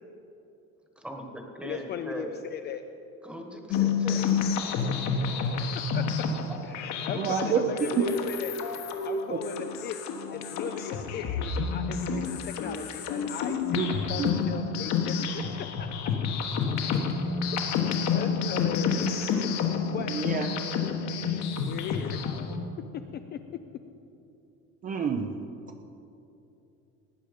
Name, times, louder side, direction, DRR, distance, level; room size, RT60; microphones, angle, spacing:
voice 1, 1.0-2.4 3.2-4.3, equal, 5° right, 3 dB, 1.3 m, -39 dB
voice 2, 1.6-2.8 5.9-6.0 6.7-8.8 9.0-10.0 10.3-15.9 17.5-17.6 18.1-19.2 19.9-20.2 21.6-22.2 23.1-23.4, left 9 dB, 35° left, 8 dB, 0.4 m, -38 dB
sound 1, 3.7-22.6, left 5 dB, 65° left, 1.3 m, -29 dB
voice 3, 7.1-7.7 8.0-8.1 9.3-9.4 13.7-13.9 14.2-14.3 20.1-20.5 24.8-25.4, right 7 dB, 30° right, 5 dB, 0.5 m, -28 dB
18.5 x 9.0 x 5.2 m, 2.8 s
cardioid pair, 165°, 30 cm